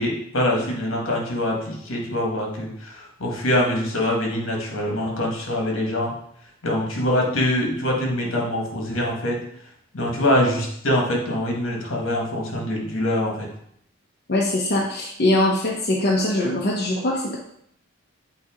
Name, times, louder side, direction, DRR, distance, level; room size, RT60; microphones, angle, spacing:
voice 1, 0.0-6.2 6.6-9.4 9.9-13.5, left 1 dB, 75° left, -1 dB, 1.7 m, -24 dB
voice 2, 14.3-17.4, left 1 dB, 50° left, -3 dB, 0.8 m, -22 dB
8.0 x 2.8 x 5.0 m, 0.71 s
head